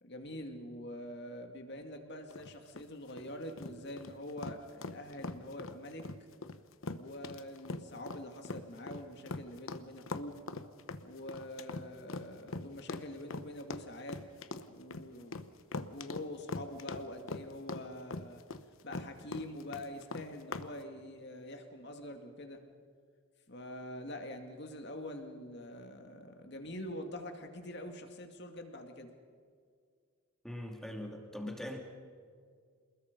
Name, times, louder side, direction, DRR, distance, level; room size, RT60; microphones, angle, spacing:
voice 1, 0.0-6.1 6.9-10.4 11.0-14.2 14.6-15.5 15.9-18.4 18.8-22.6 23.5-29.1, left 1 dB, 50° left, 4 dB, 2.4 m, -45 dB
sound 1, 2.3-20.7, left 3 dB, 70° left, 1.0 m, -42 dB
voice 2, 30.4-31.8, left 1 dB, ahead, 2 dB, 2.4 m, -41 dB
28.0 x 20.5 x 5.4 m, 2.1 s
head